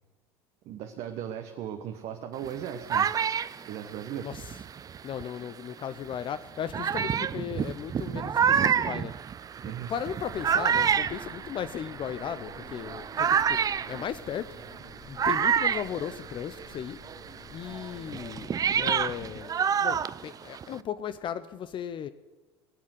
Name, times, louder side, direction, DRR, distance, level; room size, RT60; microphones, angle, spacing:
voice 1, 0.6-3.1 3.6-4.3 9.6-9.9, right 9 dB, 50° right, 6 dB, 1.2 m, -37 dB
sound 1, 2.4-5.5 6.1-6.2 6.7-16.8 17.0-20.8, right 7 dB, 25° right, 0.5 m, -28 dB
voice 2, 4.1-4.6 5.0-9.1 9.9-13.6 13.9-14.5 15.1-17.0 17.5-18.5 18.8-19.5 19.8-22.1, left 9 dB, 35° left, 13 dB, 0.7 m, -36 dB
Engine, 10.2-19.3, left 4 dB, 60° left, 2.8 m, -51 dB
21.5 x 7.4 x 8.0 m, 1.3 s
figure-of-eight pair, 65°, 14 cm